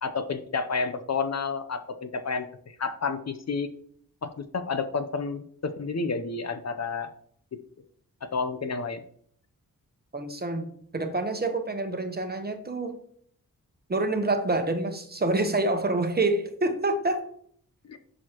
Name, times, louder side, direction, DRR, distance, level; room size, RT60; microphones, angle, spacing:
voice 1, 0.0-3.7 4.2-7.1 8.2-9.0 17.8-18.0, left 4 dB, 45° left, 9 dB, 0.7 m, -30 dB
voice 2, 10.1-13.0 13.9-17.2, right 2 dB, 25° right, 7 dB, 1.0 m, -27 dB
11.0 x 6.4 x 3.0 m, 0.62 s
wide cardioid pair, 135°, 35 cm